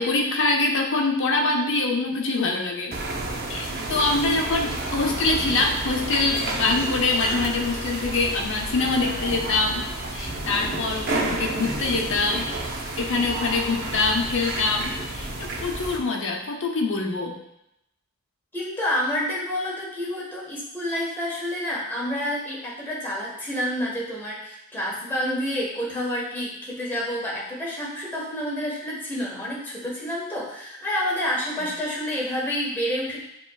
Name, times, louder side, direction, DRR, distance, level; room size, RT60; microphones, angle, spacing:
voice 1, 0.0-2.9 3.5-9.9 10.1-12.7 13.0-17.4 31.6-31.7, left 3 dB, 60° left, 0 dB, 0.7 m, -24 dB
sound 1, 2.9-16.0, right 2 dB, 45° right, 0.7 m, -31 dB
voice 2, 18.5-33.2, equal, 10° left, -6 dB, 1.3 m, -29 dB
7.0 x 3.0 x 2.3 m, 0.84 s
head